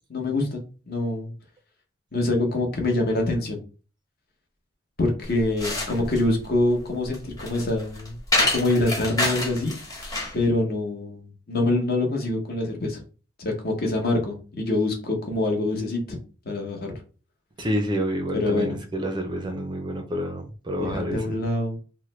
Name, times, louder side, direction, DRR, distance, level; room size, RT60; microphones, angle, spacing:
voice 1, 0.1-1.3 2.1-3.6 5.0-8.2 8.5-9.8 10.3-13.0 13.4-16.2 16.4-16.9 18.3-18.7 20.8-21.8, left 2 dB, 50° left, 0.9 m, -25 dB
sound 1, 5.2-10.4, left 2 dB, 20° left, 0.9 m, -28 dB
voice 2, 17.6-21.4, equal, 25° right, 0.4 m, -28 dB
3.1 x 2.1 x 3.0 m
head